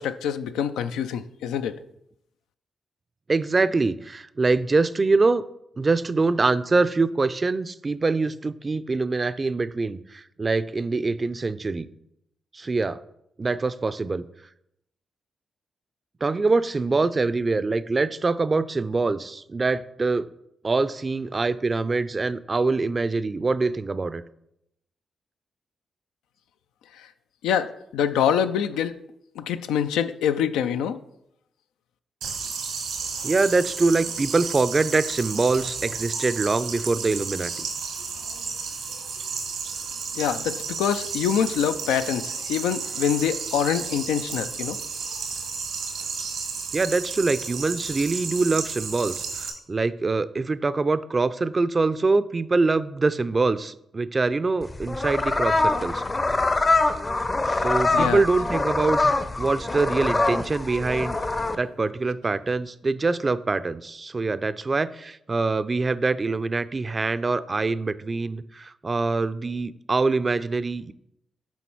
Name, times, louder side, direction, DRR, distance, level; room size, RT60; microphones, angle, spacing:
voice 1, 0.0-1.8 27.0-27.1 27.4-29.0 29.4-31.0 40.2-44.8 57.6-58.2, left 8 dB, 90° left, 10 dB, 0.3 m, -25 dB
voice 2, 3.3-5.4 5.8-11.9 12.5-13.0 13.4-14.2 16.2-20.3 20.6-24.2 33.2-37.7 46.7-56.0 57.5-61.2 61.6-70.9, right 3 dB, 40° right, 14 dB, 0.4 m, -24 dB
sound 1, 32.2-49.5, right 5 dB, 85° right, 1.4 m, -32 dB
sound 2, 54.6-61.6, left 2 dB, 30° left, 0.6 m, -24 dB
7.0 x 4.3 x 4.5 m, 0.79 s
supercardioid pair, 50°, 0 cm